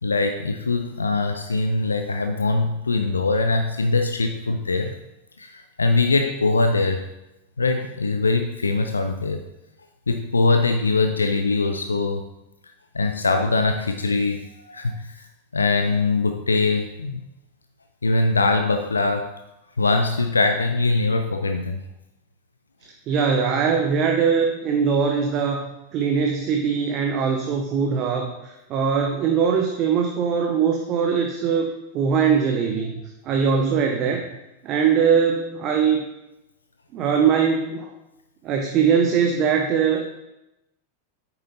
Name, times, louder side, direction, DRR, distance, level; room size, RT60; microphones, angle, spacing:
voice 1, 0.0-5.0 5.4-7.1 7.6-9.4 10.1-12.2 12.9-15.3 15.5-17.2 18.0-19.3 19.8-21.8, left 3 dB, 75° left, 6 dB, 0.4 m, -22 dB
voice 2, 23.1-31.7 31.9-32.9 33.3-34.2 34.6-36.1 36.9-37.9 38.4-40.0, right 6 dB, 35° right, 2 dB, 0.8 m, -21 dB
9.1 x 6.8 x 2.7 m, 0.92 s
figure-of-eight pair, 90°, 0 cm